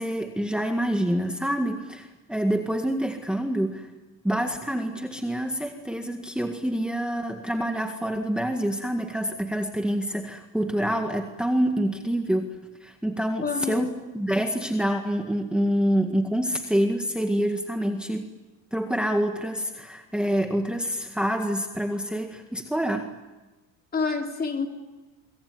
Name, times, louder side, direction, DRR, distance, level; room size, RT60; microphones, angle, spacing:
voice 1, 0.0-3.9 4.2-12.6 12.8-18.3 18.7-23.1, equal, 5° right, 1.9 m, -27 dB
voice 2, 13.4-13.9 23.9-24.7, left 5 dB, 25° left, 3.3 m, -28 dB
26.0 x 23.5 x 9.5 m
supercardioid pair, 110°, 36 cm